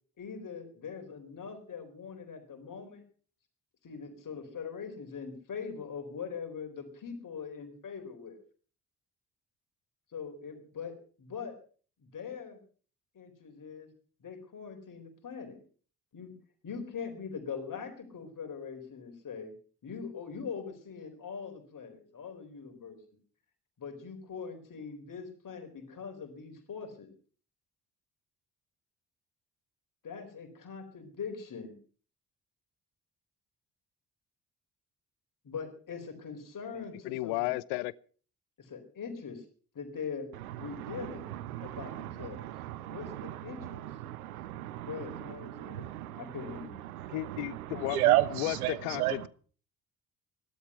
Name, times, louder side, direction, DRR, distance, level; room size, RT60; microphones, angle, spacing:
voice 1, 0.2-3.0 3.8-8.4 10.1-11.6 12.0-12.6 13.1-13.9 14.2-15.6 16.1-16.3 16.6-19.5 19.8-23.0 23.8-27.1 30.0-31.7 35.4-37.5 38.6-39.4 39.7-40.3 40.6-41.3 41.6-42.5 42.8-43.8 44.9-46.7, left 6 dB, 45° left, 5 dB, 4.3 m, -42 dB
voice 2, 36.7-37.9 47.1-49.3, left 22 dB, 65° left, 23 dB, 0.6 m, -34 dB
voice 3, 40.6-46.4 46.8-49.3, right 15 dB, 80° right, 17 dB, 0.9 m, -33 dB
15.0 x 12.5 x 5.7 m, 0.41 s
figure-of-eight pair, 40°, 44 cm